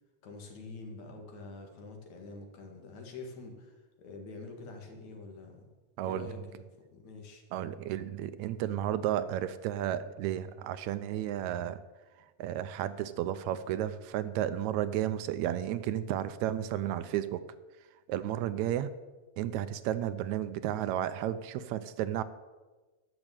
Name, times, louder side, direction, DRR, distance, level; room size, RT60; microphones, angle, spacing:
voice 1, 0.2-5.7 6.0-7.4, left 3 dB, 70° left, 3 dB, 3.2 m, -46 dB
voice 2, 6.0-6.3 7.5-11.8 12.4-17.4 18.1-18.9 19.4-22.2, right 11 dB, 80° right, 13 dB, 1.9 m, -32 dB
12.5 x 6.4 x 8.8 m, 1.2 s
omnidirectional pair, 3.4 m